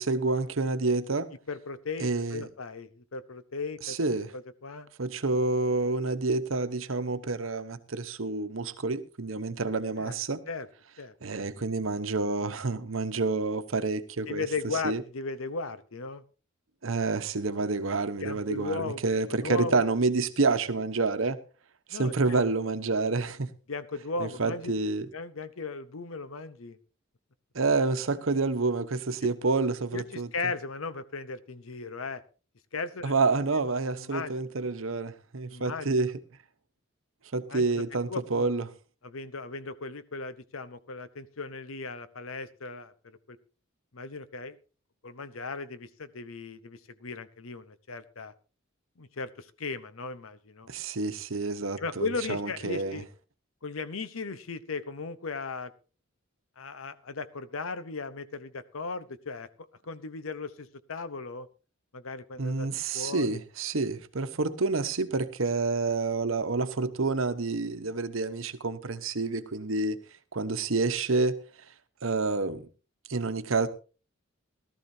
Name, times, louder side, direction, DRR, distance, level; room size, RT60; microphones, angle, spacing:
voice 1, 0.0-1.3 2.0-2.5 3.8-4.3 5.0-10.4 11.2-14.4 14.8-15.0 16.8-21.4 21.9-23.5 24.2-25.1 27.5-30.3 33.0-36.1 37.3-38.7 50.7-53.0 62.4-70.0 70.3-71.4 72.0-72.7 73.1-73.7, right 3 dB, 75° right, 1.0 m, -28 dB
voice 2, 1.5-4.0 4.3-4.9 10.0-10.2 10.5-10.7 11.0-11.1 14.3-16.2 18.2-19.0 19.4-19.8 21.9-22.5 23.7-24.7 25.1-26.8 29.9-32.2 32.7-33.1 34.0-34.3 35.5-35.9 37.5-37.8 38.1-38.5 39.0-43.4 43.9-44.6 45.0-48.3 49.0-50.7 51.8-53.1 53.6-55.7 56.6-59.5 59.8-61.5 61.9-62.7 62.9-63.4, left 4 dB, 90° left, 0.9 m, -37 dB
18.0 x 13.0 x 2.8 m
head